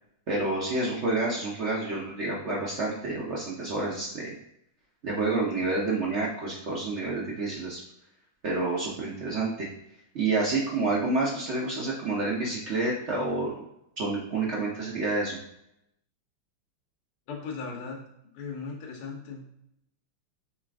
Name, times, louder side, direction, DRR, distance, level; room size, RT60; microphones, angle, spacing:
voice 1, 0.3-4.3 5.0-7.8 8.4-9.7 10.1-13.5 14.0-15.4, right 3 dB, 60° right, -4 dB, 0.7 m, -29 dB
voice 2, 17.3-18.0 18.3-19.5, left 5 dB, 80° left, -1 dB, 1.9 m, -37 dB
5.6 x 2.5 x 3.5 m, 0.77 s
omnidirectional pair, 2.4 m